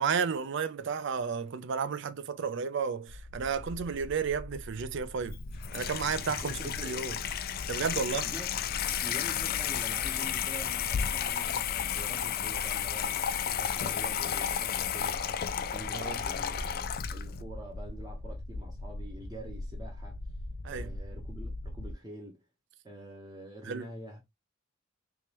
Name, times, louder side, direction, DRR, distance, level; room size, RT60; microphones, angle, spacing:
voice 1, 0.0-5.4 5.7-7.1 7.7-8.3 15.9-16.2 20.6-20.9 23.6-23.9, right 6 dB, 65° right, 0.5 m, -32 dB
sound 1, 3.1-21.9, left 1 dB, 65° left, 0.7 m, -42 dB
Water tap faucet / Sink (filling or washing), 5.2-17.4, left 9 dB, 50° left, 0.3 m, -33 dB
voice 2, 6.1-7.1 7.9-8.6 9.0-16.6 17.1-20.2 20.7-22.4 22.8-24.2, right 1 dB, 20° right, 0.9 m, -46 dB
3.5 x 3.1 x 2.9 m
head